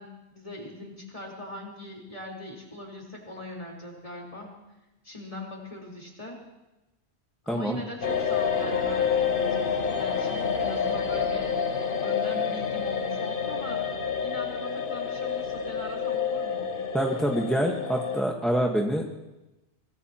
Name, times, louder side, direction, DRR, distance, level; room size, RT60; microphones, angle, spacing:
voice 1, 0.0-4.5 5.0-6.4 7.4-9.6 9.8-11.6 12.0-13.9 14.2-16.7, left 1 dB, 30° left, -2 dB, 4.2 m, -40 dB
voice 2, 7.5-7.8 16.9-19.1, equal, ahead, 0 dB, 1.3 m, -26 dB
sound 1, 8.0-18.2, left 6 dB, 55° left, 1.1 m, -28 dB
24.5 x 19.0 x 3.0 m, 1.0 s
omnidirectional pair, 1.1 m